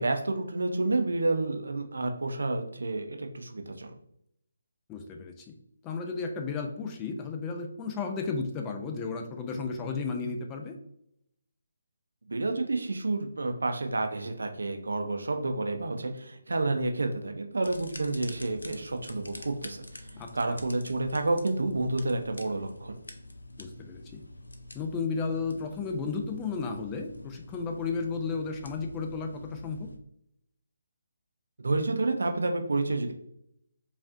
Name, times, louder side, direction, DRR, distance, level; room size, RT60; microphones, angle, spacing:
voice 1, 0.0-3.9 12.3-20.0 20.3-23.0 31.6-33.1, right 2 dB, 75° right, 5 dB, 0.6 m, -29 dB
voice 2, 4.9-5.5 5.8-10.7 20.2-20.6 23.6-24.2 24.7-29.9, left 4 dB, 20° left, 3 dB, 0.4 m, -33 dB
sound 1, 17.6-30.0, left 1 dB, 85° left, 0.5 m, -47 dB
5.1 x 2.5 x 2.5 m, 0.76 s
figure-of-eight pair, 150°, 0 cm